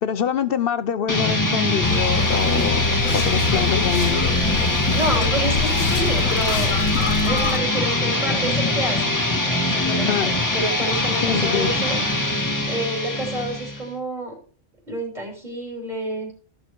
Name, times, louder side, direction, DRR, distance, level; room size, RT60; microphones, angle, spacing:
voice 1, 0.0-4.2 10.1-10.3 11.2-11.7, left 8 dB, 55° left, 13 dB, 0.7 m, -25 dB
sound 1, 1.1-13.9, left 2 dB, 15° left, 1.7 m, -23 dB
sound 2, 1.8-7.6, left 4 dB, 90° left, 1.3 m, -25 dB
voice 2, 4.9-6.7 7.2-9.2 9.4-12.0 12.7-14.3 14.9-16.3, right 1 dB, 35° right, 0 dB, 3.4 m, -29 dB
13.5 x 6.4 x 4.5 m, 0.41 s
omnidirectional pair, 1.3 m